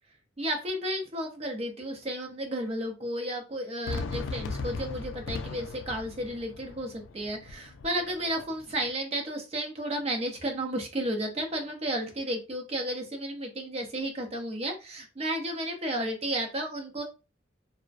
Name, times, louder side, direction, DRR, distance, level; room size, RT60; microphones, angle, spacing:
voice 1, 0.4-17.0, right 1 dB, 35° right, 2 dB, 0.6 m, -33 dB
Fireworks, 3.9-8.9, left 3 dB, 80° left, 0.3 m, -38 dB
2.4 x 2.1 x 2.5 m, 0.30 s
head